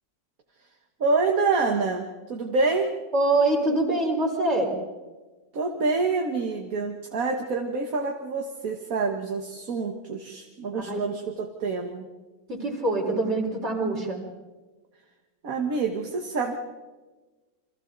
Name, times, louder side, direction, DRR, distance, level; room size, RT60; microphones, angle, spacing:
voice 1, 1.0-2.9 5.5-12.1 15.4-16.6, right 4 dB, 60° right, 3 dB, 1.9 m, -27 dB
voice 2, 3.1-4.7 10.7-11.1 12.5-14.2, right 2 dB, 45° right, -2 dB, 5.0 m, -24 dB
29.5 x 25.5 x 4.0 m, 1.2 s
omnidirectional pair, 1.7 m